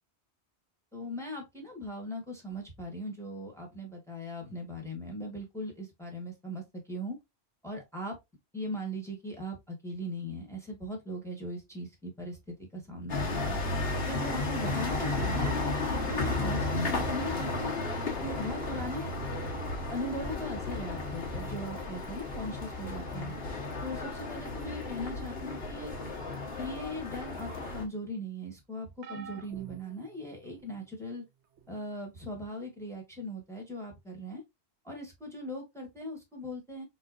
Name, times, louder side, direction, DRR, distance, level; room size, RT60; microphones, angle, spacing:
voice 1, 0.9-7.2 7.6-8.2 8.5-13.6 14.1-17.7 18.0-19.1 19.9-23.3 23.8-26.0 26.6-31.2 31.7-34.4 34.8-36.8, equal, 5° left, 1.3 m, -39 dB
sound 1, 13.1-27.8, left 2 dB, 65° left, 1.4 m, -33 dB
sound 2, 29.0-30.8 31.6-31.8 33.1-33.2, right 6 dB, 85° right, 1.0 m, -48 dB
4.1 x 3.2 x 2.5 m
omnidirectional pair, 1.1 m